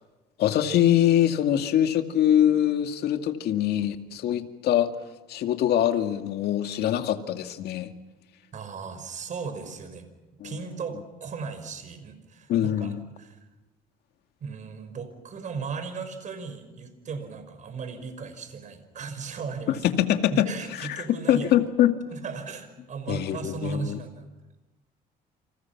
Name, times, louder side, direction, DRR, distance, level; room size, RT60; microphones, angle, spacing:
voice 1, 0.4-4.9 5.3-7.9 10.4-10.5 12.5-13.0 19.8-20.5 20.8-21.9 23.1-24.0, left 11 dB, 75° left, 7 dB, 2.2 m, -23 dB
voice 2, 8.5-10.1 10.4-13.4 14.4-19.8 20.3-21.5 22.1-24.3, right 5 dB, 45° right, 9 dB, 5.6 m, -36 dB
29.5 x 26.5 x 6.0 m, 1.1 s
cardioid pair, 110°, 17 cm